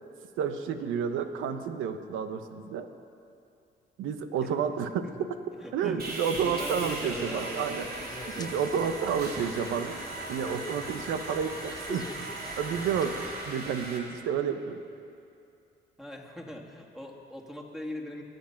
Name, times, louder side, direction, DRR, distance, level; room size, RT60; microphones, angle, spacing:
voice 1, 0.4-2.9 4.0-5.1 5.7-7.9 8.4-9.9 10.3-12.0 12.6-13.2 13.5-14.8, right 7 dB, 90° right, 9 dB, 1.0 m, -30 dB
voice 2, 5.6-8.2 16.0-18.2, left 1 dB, ahead, 1 dB, 2.1 m, -41 dB
Sawing, 6.0-14.0, right 2 dB, 50° right, 3.0 m, -38 dB
sound 1, 7.7-13.4, left 3 dB, 20° left, 0.9 m, -44 dB
22.5 x 8.1 x 5.8 m, 2.6 s
cardioid pair, 90°, 20 cm